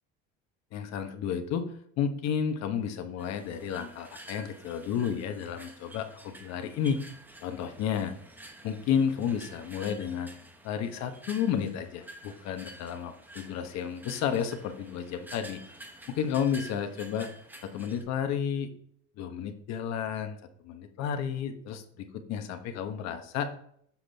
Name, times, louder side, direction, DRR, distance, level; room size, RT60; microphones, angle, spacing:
voice 1, 0.7-1.7 2.0-7.0 7.4-8.1 8.6-10.3 10.6-15.6 16.1-17.3 17.6-18.7 19.2-20.4 20.6-23.5, left 8 dB, 60° left, 7 dB, 1.1 m, -31 dB
sound 1, 3.2-18.0, right 1 dB, 5° right, 0.8 m, -50 dB
7.2 x 5.9 x 3.4 m, 0.66 s
cardioid pair, 135°, 30 cm